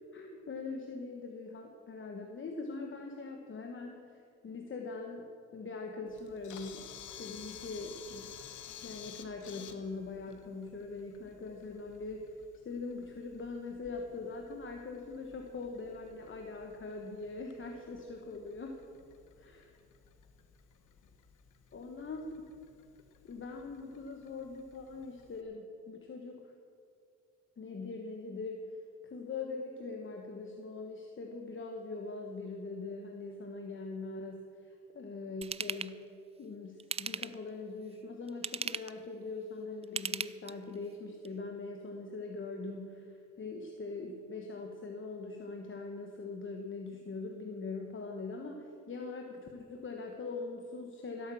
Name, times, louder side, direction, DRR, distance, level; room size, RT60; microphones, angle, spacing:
voice 1, 0.1-6.9 7.2-8.4 8.8-12.4 12.6-18.8 19.4-19.7 21.7-22.3 23.3-26.5 27.6-28.8 29.0-36.1 36.4-51.3, left 3 dB, 40° left, 3 dB, 1.4 m, -42 dB
Camera, 6.1-25.4, left 9 dB, 80° left, 1.3 m, -54 dB
Ratchet pawl / Tools, 35.4-35.9 36.8-37.5 38.3-39.0 39.8-40.7 41.2-41.3, right 6 dB, 20° right, 0.4 m, -37 dB
16.0 x 8.8 x 7.1 m, 2.5 s
cardioid pair, 90°, 30 cm